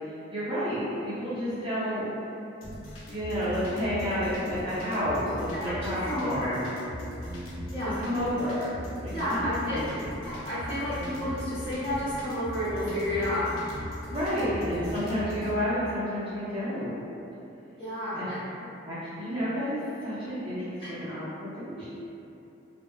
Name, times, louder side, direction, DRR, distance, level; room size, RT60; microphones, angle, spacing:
voice 1, 0.0-2.1 3.1-6.7 8.0-8.7 9.0-10.1 14.1-17.0 18.1-18.2 18.8-21.9, equal, 25° right, -12 dB, 0.5 m, -31 dB
sound 1, 2.6-15.5, equal, 90° left, 0.5 m, -38 dB
voice 2, 5.5-6.6 7.7-7.9 9.1-9.8 10.2-13.5 14.3-14.5 17.8-18.4, left 1 dB, 25° left, -13 dB, 0.8 m, -31 dB
2.1 x 2.0 x 2.9 m, 2.8 s
head